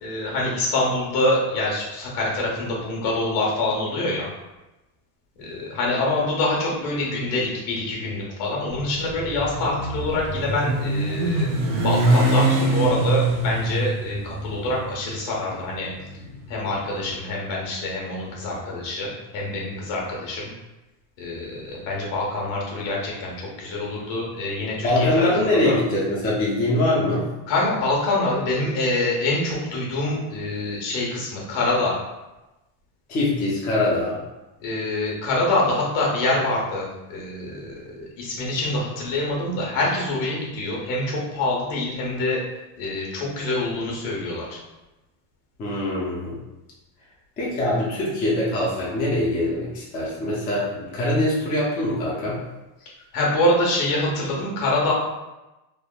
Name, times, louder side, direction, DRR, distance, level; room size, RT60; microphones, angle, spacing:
voice 1, 0.0-4.3 5.4-11.5 11.8-15.9 16.5-20.5 21.2-25.8 27.5-31.9 34.6-42.4 42.8-44.6 53.1-54.9, left 2 dB, 70° left, -2 dB, 1.1 m, -25 dB
Motorcycle, 8.7-16.9, right 2 dB, 70° right, 0.8 m, -24 dB
voice 2, 24.8-27.3 33.1-34.2 45.6-46.4 47.4-52.4, left 1 dB, 20° left, -6 dB, 0.4 m, -23 dB
3.3 x 2.0 x 2.2 m, 1.0 s
cardioid pair, 140°, 48 cm